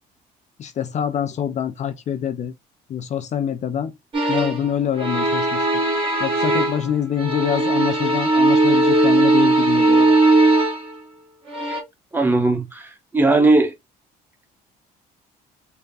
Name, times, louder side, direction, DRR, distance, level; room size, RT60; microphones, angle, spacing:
voice 1, 0.6-2.5 2.9-3.9 4.3-5.7 6.2-10.2, left 9 dB, 45° left, 0.5 m, -25 dB
sound 1, 4.1-4.7 5.0-6.9 7.2-10.9 11.5-11.8, right 2 dB, 30° right, 1.7 m, -18 dB
voice 2, 12.1-12.8 13.1-13.7, right 2 dB, 10° right, 0.9 m, -17 dB
3.4 x 2.2 x 3.8 m
cardioid pair, 110°, 17 cm